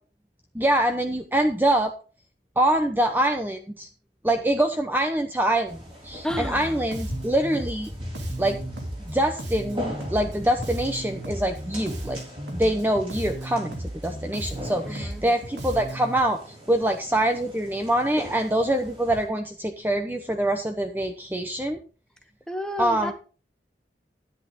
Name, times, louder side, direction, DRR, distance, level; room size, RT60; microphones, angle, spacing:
voice 1, 0.5-1.9 2.6-3.9 4.2-5.8 6.0-7.9 8.4-8.6 9.1-9.8 10.1-12.2 12.5-13.8 14.0-16.4 16.7-21.8 22.8-23.1, right 1 dB, 10° right, 5 dB, 0.9 m, -24 dB
sound 1, 5.7-19.3, equal, 30° right, 4.1 m, -40 dB
voice 2, 6.2-6.7 14.9-15.2 22.5-23.1, equal, 5° left, 7 dB, 1.1 m, -31 dB
Bass guitar, 6.3-16.2, right 1 dB, 80° right, 2.9 m, -35 dB
10.5 x 10.5 x 3.7 m, 0.36 s
head